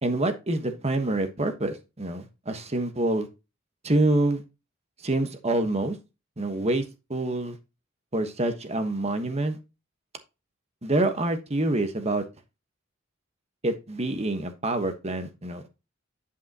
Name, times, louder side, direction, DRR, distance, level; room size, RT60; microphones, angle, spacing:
voice 1, 0.0-3.3 3.8-4.4 5.0-6.0 6.4-6.8 7.1-7.6 8.1-9.6 10.8-12.2 13.6-15.7, right 2 dB, 30° right, 1.2 m, -26 dB
10.0 x 5.7 x 2.9 m
head